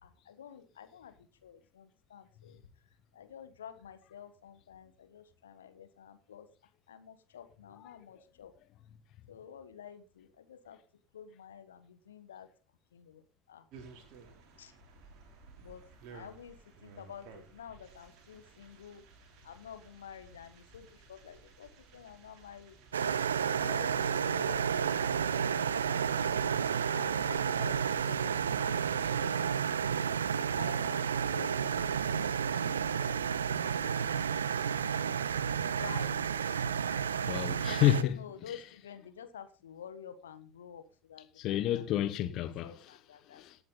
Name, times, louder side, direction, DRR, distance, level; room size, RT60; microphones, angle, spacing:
voice 1, 0.0-2.6 3.1-6.5 6.9-8.5 9.3-10.8 11.1-12.5 12.9-13.7 14.6-14.7 15.6-15.8 16.1-19.0 19.4-22.8 23.4-26.2 26.8-29.5 30.2-32.9 33.6-34.4 34.8-35.3 35.8-36.2 36.8-37.0 38.0-42.0 42.6-43.4, left 8 dB, 75° left, 1.4 m, -50 dB
sound 1, 13.7-29.4, right 4 dB, 50° right, 3.2 m, -56 dB
sound 2, 22.9-38.0, right 7 dB, 75° right, 0.6 m, -31 dB
voice 2, 37.3-38.2 41.4-42.9 43.3-43.6, left 13 dB, 50° left, 1.3 m, -30 dB
18.0 x 7.7 x 4.0 m
figure-of-eight pair, 65°, 0 cm